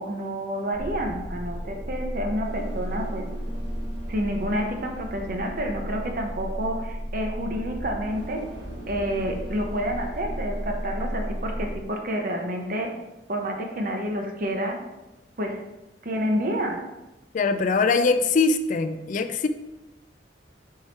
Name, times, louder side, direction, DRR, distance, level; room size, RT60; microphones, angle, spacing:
voice 1, 0.0-3.3 4.1-8.5 8.9-12.9 13.3-14.8 15.4-15.6 16.0-16.8, equal, 50° right, 3 dB, 0.9 m, -29 dB
sound 1, 0.7-11.8, equal, 90° right, 1.3 m, -34 dB
voice 2, 17.3-19.5, left 4 dB, 45° left, 9 dB, 0.3 m, -22 dB
4.8 x 4.7 x 4.2 m, 1.0 s
head